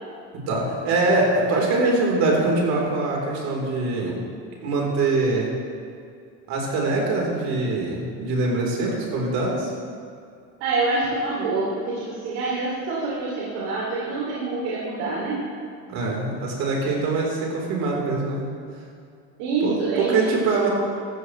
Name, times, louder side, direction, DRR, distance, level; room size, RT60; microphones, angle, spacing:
voice 1, 0.5-4.2 4.6-5.5 6.5-9.7 15.9-18.5 19.6-19.8 20.1-20.7, right 3 dB, 60° right, -2 dB, 3.8 m, -23 dB
voice 2, 10.6-15.5 19.4-20.3, right 3 dB, 85° right, -5 dB, 2.8 m, -26 dB
15.0 x 13.5 x 3.2 m, 2.4 s
cardioid pair, 140°, 32 cm